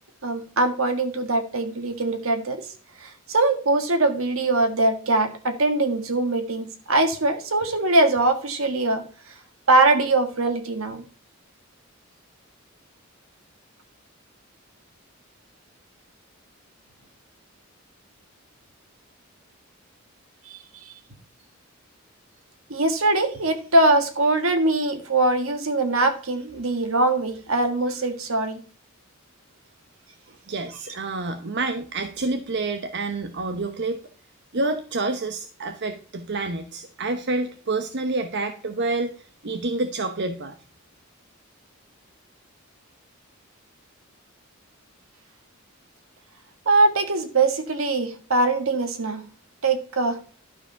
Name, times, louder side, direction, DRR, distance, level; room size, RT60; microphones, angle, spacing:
voice 1, 0.2-2.7 3.0-9.0 9.7-11.0 20.5-20.9 22.7-28.6 46.6-49.2 49.6-50.2, right 2 dB, 75° right, 7 dB, 1.6 m, -22 dB
voice 2, 30.5-34.0 34.5-40.5, right 3 dB, 55° right, 7 dB, 0.8 m, -28 dB
12.0 x 4.9 x 5.6 m, 0.41 s
head